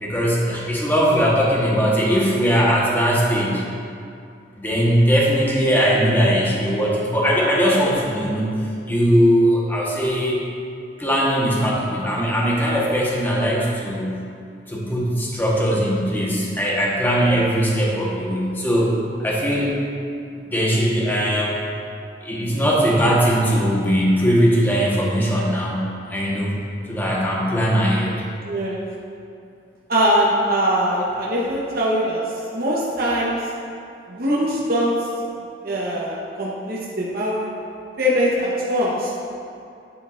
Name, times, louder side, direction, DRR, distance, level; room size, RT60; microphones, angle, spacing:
voice 1, 0.0-3.6 4.6-8.5 8.9-10.4 11.0-14.2 14.7-19.8 20.5-21.5 22.2-26.5 26.9-28.1, equal, 10° left, -5 dB, 1.1 m, -20 dB
voice 2, 28.5-28.8 29.9-32.2 32.5-33.4 34.1-34.9 35.6-37.5 38.0-39.1, equal, 55° right, -6 dB, 0.9 m, -22 dB
9.0 x 7.6 x 2.5 m, 2.5 s
head